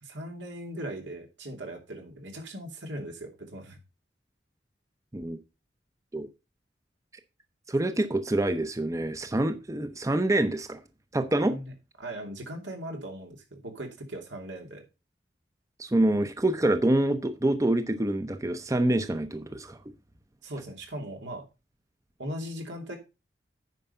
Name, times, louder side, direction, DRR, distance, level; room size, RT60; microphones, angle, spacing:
voice 1, 0.0-3.8 11.4-11.7 12.0-14.8 20.4-21.4 22.2-23.0, right 1 dB, 90° right, 2.8 m, -39 dB
voice 2, 7.7-10.8 11.1-11.6 15.8-19.8, right 1 dB, 20° right, 0.7 m, -26 dB
9.2 x 5.3 x 5.5 m
head